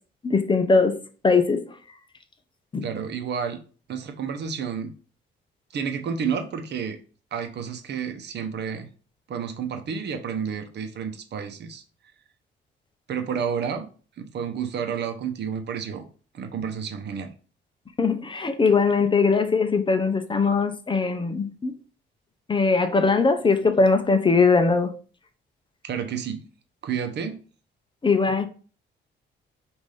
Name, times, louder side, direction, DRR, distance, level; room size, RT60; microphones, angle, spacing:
voice 1, 0.2-1.7 2.7-2.9 18.0-21.7 22.5-24.9 28.0-28.5, left 4 dB, 25° left, 0.6 m, -21 dB
voice 2, 2.8-3.6 3.9-4.9 5.7-7.0 7.3-8.9 9.3-11.8 13.1-13.9 14.2-16.0 16.3-17.3 25.8-26.4 26.8-27.4, right 7 dB, 60° right, 0.8 m, -30 dB
5.3 x 2.6 x 3.3 m
cardioid pair, 90°, 20 cm